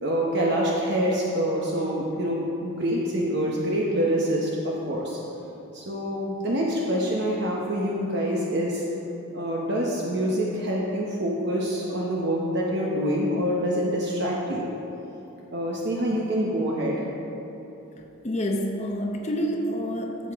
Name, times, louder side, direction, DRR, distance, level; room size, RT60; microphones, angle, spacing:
voice 1, 0.0-5.2 5.7-8.8 9.3-14.7 15.5-17.0, equal, 50° right, -3 dB, 0.9 m, -26 dB
voice 2, 18.2-20.3, equal, 30° left, 1 dB, 0.7 m, -28 dB
13.5 x 7.9 x 3.6 m, 3.0 s
head